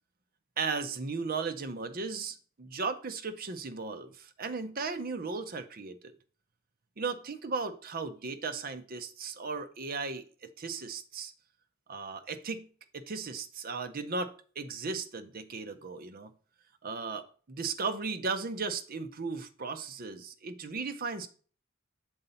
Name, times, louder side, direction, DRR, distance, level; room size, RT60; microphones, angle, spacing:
voice 1, 0.6-6.1 7.0-11.3 11.9-12.7 12.9-16.3 16.8-21.3, right 4 dB, 45° right, 0.7 m, -36 dB
7.1 x 4.0 x 5.4 m
head